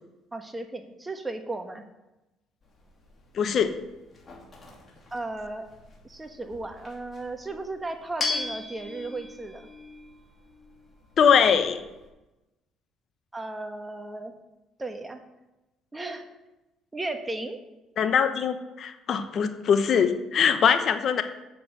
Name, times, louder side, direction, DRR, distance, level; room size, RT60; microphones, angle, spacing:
voice 1, 0.3-1.8 5.1-5.7 6.0-9.7 13.3-14.3 14.8-15.2 15.9-16.3 16.9-17.6, right 2 dB, 15° right, 6 dB, 1.2 m, -35 dB
sound 1, 2.6-12.1, left 3 dB, 35° left, 2.7 m, -39 dB
voice 2, 3.3-3.7 11.2-11.8 18.0-21.2, left 7 dB, 55° left, 10 dB, 0.8 m, -22 dB
7.5 x 7.0 x 6.6 m, 1.0 s
supercardioid pair, 80°, 0 cm